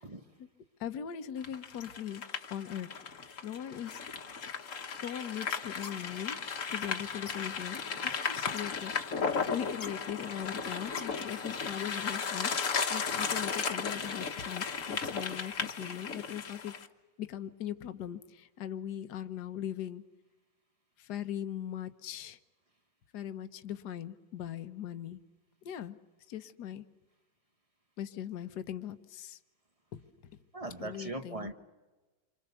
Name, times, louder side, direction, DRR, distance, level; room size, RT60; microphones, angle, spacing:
voice 1, 0.8-2.2 2.5-2.9 3.4-4.0 5.0-6.4 6.7-8.9 9.5-16.7 17.2-20.0 21.1-22.4 23.1-25.2 25.6-26.0 26.3-26.8 28.0-29.4 29.9-30.0 30.8-31.5, left 10 dB, 65° left, 1.5 m, -40 dB
sound 1, 1.4-16.9, left 5 dB, 50° left, 1.5 m, -35 dB
voice 2, 30.5-31.5, right 2 dB, 20° right, 1.1 m, -39 dB
28.0 x 24.5 x 6.9 m
omnidirectional pair, 1.9 m